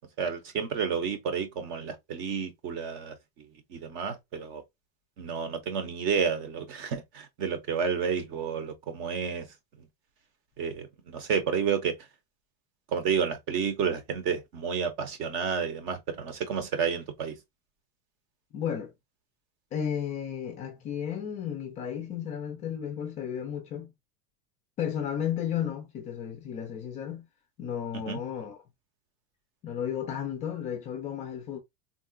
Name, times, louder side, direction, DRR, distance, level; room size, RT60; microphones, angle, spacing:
voice 1, 0.2-3.1 3.7-4.6 5.2-9.5 10.6-12.0 12.9-17.3 27.9-28.2, right 6 dB, 40° right, 0.8 m, -30 dB
voice 2, 18.5-18.9 19.7-23.9 24.8-27.3 27.6-28.6 29.6-31.6, left 9 dB, 25° left, 0.4 m, -33 dB
3.7 x 2.3 x 2.3 m
supercardioid pair, 170°, 31 cm